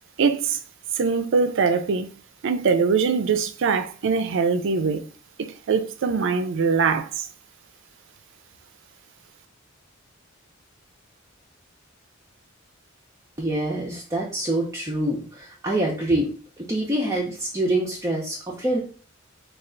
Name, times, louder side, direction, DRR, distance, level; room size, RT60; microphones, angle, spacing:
voice 1, 0.2-0.6 0.9-2.1 2.4-5.1 5.4-7.3, right 5 dB, 65° right, 0.4 m, -22 dB
voice 2, 13.4-16.3 16.6-18.8, right 1 dB, 15° right, 0.5 m, -25 dB
3.3 x 2.3 x 3.8 m
head